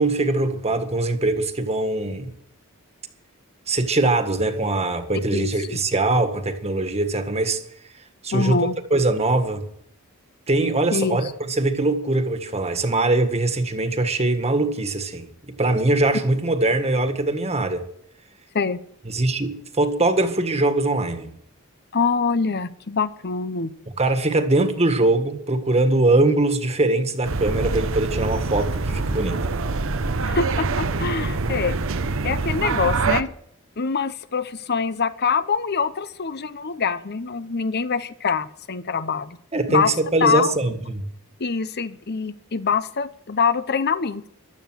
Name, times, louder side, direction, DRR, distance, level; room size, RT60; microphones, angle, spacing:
voice 1, 0.0-2.3 3.7-7.6 8.2-9.7 10.5-17.8 19.1-21.3 24.0-29.4 39.5-41.0, right 2 dB, 30° right, 1.8 m, -22 dB
voice 2, 5.3-5.8 8.3-8.7 10.9-11.3 18.5-18.8 21.9-23.7 30.2-31.8 32.2-33.3 33.8-39.4 39.7-39.9 40.2-40.5 41.4-44.3, left 5 dB, 50° left, 0.9 m, -24 dB
sound 1, 27.2-33.2, right 3 dB, 65° right, 0.9 m, -25 dB
15.0 x 12.0 x 6.3 m
head